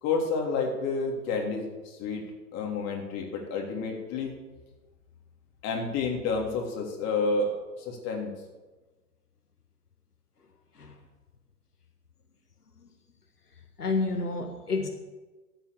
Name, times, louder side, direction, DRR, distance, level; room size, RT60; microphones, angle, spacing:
voice 1, 0.0-2.2 2.5-4.3 5.6-8.3, left 4 dB, 35° left, 0 dB, 3.3 m, -30 dB
voice 2, 13.8-14.9, left 3 dB, 85° left, 4 dB, 1.7 m, -29 dB
13.0 x 8.4 x 7.0 m, 1.2 s
figure-of-eight pair, 105°, 45 cm